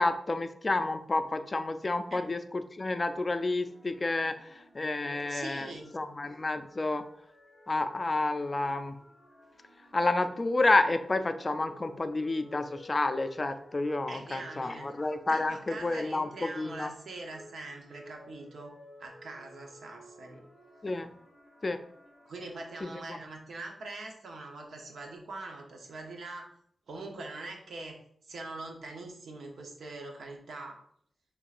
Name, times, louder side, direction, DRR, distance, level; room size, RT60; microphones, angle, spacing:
voice 1, 0.0-7.1 7.7-9.0 9.9-16.9 20.8-21.1 21.6-21.8 22.8-23.2, left 2 dB, 35° left, 9 dB, 0.4 m, -30 dB
sound 1, 2.9-22.8, equal, 10° left, 1.8 m, -55 dB
voice 2, 5.0-5.9 14.1-14.9 15.3-18.7 19.0-20.5 22.3-26.5 26.9-28.0 28.3-30.8, right 2 dB, 85° right, 1 dB, 0.9 m, -43 dB
5.6 x 3.7 x 2.5 m, 0.66 s
wide cardioid pair, 90°, 0 cm